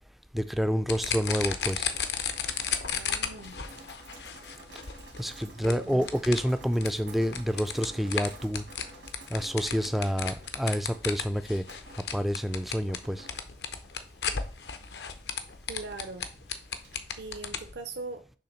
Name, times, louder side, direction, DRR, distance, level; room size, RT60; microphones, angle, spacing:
voice 1, 0.3-1.9 5.2-8.6 9.3-11.6 12.1-13.3, equal, ahead, 11 dB, 0.3 m, -28 dB
sound 1, 0.9-17.7, left 7 dB, 65° left, 0.7 m, -35 dB
Drip, 1.5-17.0, right 2 dB, 85° right, 1.6 m, -52 dB
voice 2, 2.9-3.6 5.4-6.1 15.7-16.2 17.2-18.2, right 3 dB, 70° right, 6 dB, 0.6 m, -41 dB
6.5 x 3.4 x 5.7 m, 0.37 s
head